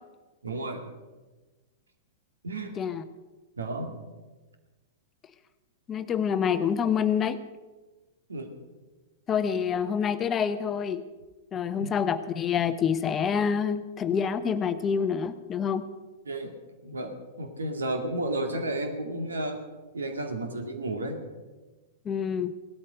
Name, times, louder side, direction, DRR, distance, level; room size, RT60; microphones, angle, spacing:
voice 1, 0.4-0.8 2.4-2.7 3.6-4.0 8.3-8.5 11.8-11.9 16.3-16.5 16.8-19.6 19.9-21.2, right 1 dB, 75° right, 5 dB, 2.2 m, -32 dB
voice 2, 5.9-7.4 9.3-11.0 11.5-15.9 22.0-22.5, left 7 dB, 25° left, 11 dB, 0.8 m, -27 dB
17.5 x 13.0 x 5.1 m, 1.2 s
figure-of-eight pair, 100°, 0 cm